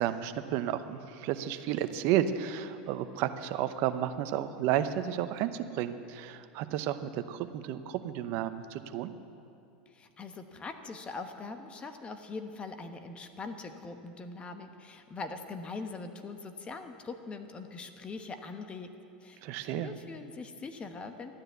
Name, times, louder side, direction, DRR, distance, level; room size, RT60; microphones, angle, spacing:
voice 1, 0.0-9.1 19.4-19.9, right 11 dB, 60° right, 11 dB, 0.8 m, -32 dB
voice 2, 9.9-18.9 19.2-21.3, left 3 dB, 25° left, 7 dB, 1.1 m, -42 dB
13.0 x 10.0 x 8.0 m, 2.6 s
hypercardioid pair, 100°, 4 cm